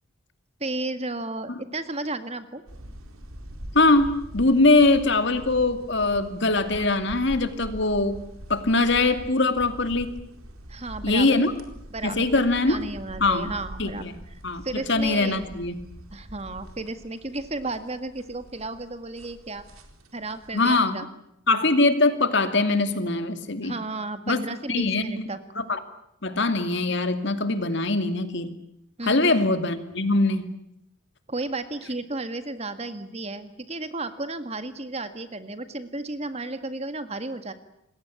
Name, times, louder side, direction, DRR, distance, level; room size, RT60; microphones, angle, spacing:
voice 1, 0.6-2.6 10.7-11.4 11.9-12.2 12.7-14.1 14.6-15.4 16.1-19.7 20.1-21.1 23.6-25.4 29.0-29.4 31.3-37.5, right 2 dB, 30° right, 10 dB, 1.8 m, -33 dB
sound 1, 2.7-20.8, equal, 90° right, 4.2 m, -43 dB
voice 2, 3.7-8.2 8.5-10.1 11.0-11.5 12.0-12.8 13.2-13.5 13.8-14.2 14.4-15.8 20.5-21.0 21.5-23.7 24.3-24.4 24.7-25.0 25.6-25.8 26.2-28.5 29.0-30.5, left 2 dB, 55° left, 9 dB, 2.5 m, -22 dB
27.5 x 21.5 x 8.5 m, 0.79 s
head